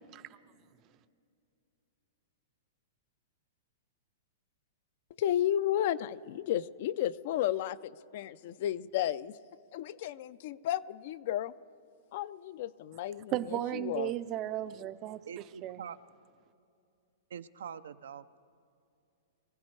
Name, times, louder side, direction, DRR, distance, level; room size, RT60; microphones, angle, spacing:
voice 1, 5.2-9.4 9.7-11.5 12.1-14.1, left 11 dB, 50° left, 16 dB, 0.4 m, -33 dB
voice 2, 13.3-15.8, right 13 dB, 30° right, 14 dB, 0.5 m, -35 dB
voice 3, 15.3-16.0 17.3-18.2, right 8 dB, 85° right, 12 dB, 0.6 m, -44 dB
23.5 x 15.5 x 3.3 m, 2.6 s
hypercardioid pair, 155°, 0 cm